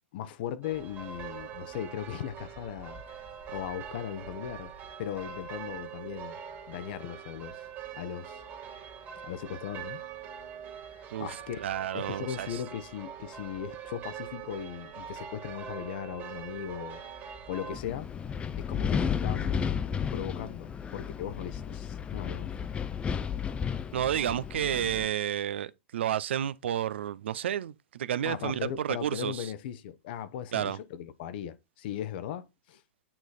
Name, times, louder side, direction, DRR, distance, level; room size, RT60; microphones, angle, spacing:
voice 1, 0.1-3.2 3.5-4.7 5.0-6.4 6.7-7.6 7.9-8.4 9.2-10.0 11.2-11.6 11.9-17.0 17.5-18.1 18.6-19.8 20.1-22.5 28.2-32.8, left 10 dB, 60° left, 0.8 m, -38 dB
sound 1, 0.6-17.8, right 8 dB, 30° right, 1.9 m, -43 dB
voice 2, 11.1-12.6 23.9-29.5 30.5-30.8, right 10 dB, 75° right, 0.4 m, -31 dB
Wind, 17.7-25.1, left 7 dB, 15° left, 0.4 m, -33 dB
8.8 x 3.2 x 4.0 m
hypercardioid pair, 115°, 6 cm